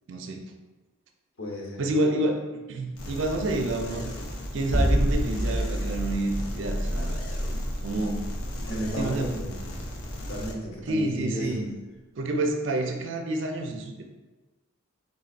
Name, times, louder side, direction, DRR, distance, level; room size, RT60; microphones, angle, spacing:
voice 1, 0.1-0.4 1.8-4.1 4.5-7.2 7.8-8.2 9.0-9.3 10.9-11.7 12.1-14.0, right 2 dB, 65° right, 4 dB, 0.4 m, -28 dB
voice 2, 1.4-1.9 8.6-9.5 10.3-11.6, equal, 70° left, -2 dB, 1.0 m, -33 dB
sound 1, 3.0-10.5, left 1 dB, 90° left, 0.7 m, -37 dB
sound 2, 4.7-10.9, equal, 5° left, 0.6 m, -28 dB
3.9 x 3.9 x 2.4 m, 1.2 s
head